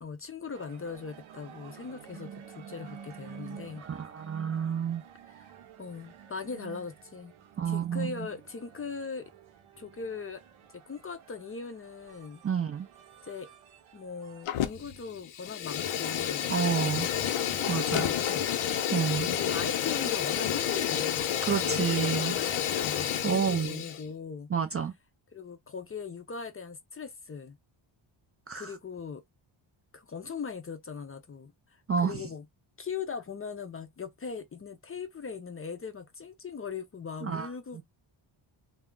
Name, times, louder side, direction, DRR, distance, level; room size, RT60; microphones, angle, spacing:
voice 1, 0.0-3.9 5.3-5.5 5.8-7.3 7.6-9.3 9.8-10.4 10.7-12.4 13.2-13.5 13.9-16.5 18.0-18.6 18.9-24.5 25.3-27.6 28.5-29.2 29.9-32.4 32.8-37.8, left 5 dB, 30° left, 0.4 m, -40 dB
sound 1, 0.5-14.4, right 8 dB, 70° right, 0.7 m, -50 dB
voice 2, 3.8-5.0 7.6-8.3 12.4-12.9 16.5-17.1 17.7-18.1 18.9-19.3 21.5-22.3 23.2-23.8 24.5-24.9 28.5-28.8 31.9-32.2 37.2-37.8, right 7 dB, 30° right, 0.4 m, -30 dB
Fire, 14.5-15.0 15.3-24.0, left 9 dB, 75° left, 0.6 m, -30 dB
2.3 x 2.1 x 3.6 m
cardioid pair, 90°, 50 cm